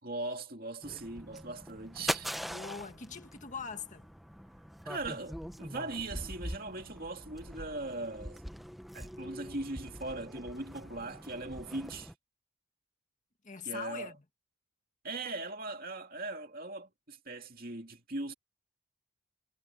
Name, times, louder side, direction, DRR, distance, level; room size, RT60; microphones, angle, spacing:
voice 1, 0.0-2.4 4.8-8.4 8.9-12.1 13.6-14.1 15.0-18.3, right 2 dB, 45° right, 2.6 m, -40 dB
sound 1, 0.8-12.1, equal, ahead, 0.8 m, -43 dB
voice 2, 2.5-4.1 13.4-14.2, left 6 dB, 35° left, 1.8 m, -42 dB
head